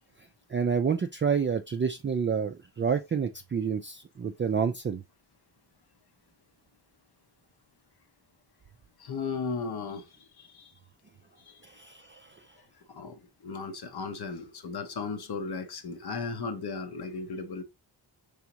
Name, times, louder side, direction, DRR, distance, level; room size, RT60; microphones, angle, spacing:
voice 1, 0.5-5.0 11.6-12.3, right 6 dB, 30° right, 0.4 m, -29 dB
voice 2, 9.0-10.7 11.4-11.5 12.9-17.6, left 4 dB, 60° left, 0.9 m, -36 dB
4.9 x 3.5 x 2.9 m
cardioid pair, 75°, 44 cm